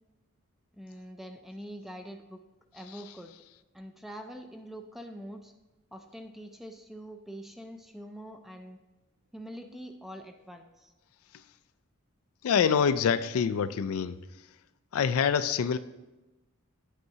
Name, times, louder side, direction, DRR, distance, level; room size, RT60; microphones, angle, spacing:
voice 1, 0.7-2.4 2.7-3.3 3.7-5.5 5.9-8.8 9.3-10.9, equal, ahead, 0.4 m, -44 dB
voice 2, 12.4-14.2 14.9-15.8, left 7 dB, 75° left, 0.4 m, -25 dB
9.2 x 8.0 x 2.8 m
head